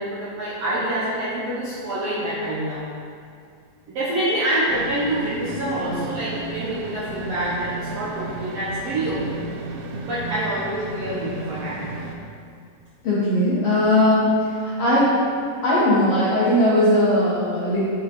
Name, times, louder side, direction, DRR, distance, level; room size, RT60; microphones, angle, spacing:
voice 1, 0.0-2.8 3.9-9.4 10.0-11.8, right 1 dB, 70° right, -10 dB, 1.6 m, -26 dB
sound 1, 4.7-12.2, right 3 dB, 90° right, 1.8 m, -34 dB
voice 2, 13.0-14.3 14.6-15.1 15.6-17.8, left 1 dB, 75° left, -9 dB, 1.4 m, -19 dB
8.4 x 3.7 x 4.3 m, 2.3 s
omnidirectional pair, 4.3 m